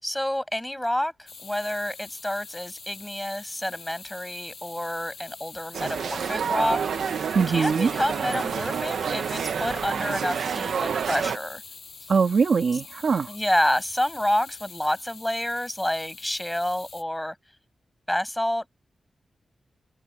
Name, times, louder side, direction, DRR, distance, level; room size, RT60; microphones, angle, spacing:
voice 1, 0.0-6.8 7.5-11.6 13.3-17.4 18.1-18.7, left 1 dB, 5° left, 6.2 m, -28 dB
sound 1, 1.3-17.0, left 5 dB, 45° left, 7.9 m, -44 dB
sound 2, 5.7-11.4, right 7 dB, 90° right, 0.9 m, -29 dB
voice 2, 7.3-7.9 12.1-13.3, right 5 dB, 55° right, 2.4 m, -22 dB
wide cardioid pair, 160°, 0 cm